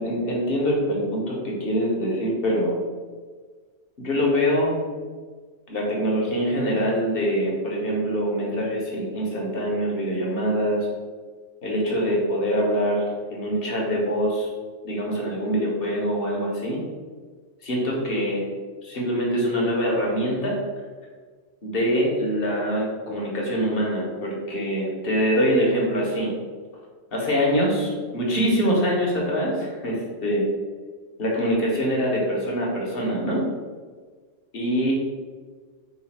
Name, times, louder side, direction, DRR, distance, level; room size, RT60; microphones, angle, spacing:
voice 1, 0.0-2.8 4.0-4.8 5.7-10.8 11.6-14.5 14.8-16.8 17.6-18.4 18.8-20.6 21.6-26.3 27.1-30.4 31.2-33.5 34.5-34.9, equal, 55° left, -2 dB, 1.2 m, -24 dB
4.0 x 2.7 x 4.2 m, 1.5 s
omnidirectional pair, 1.2 m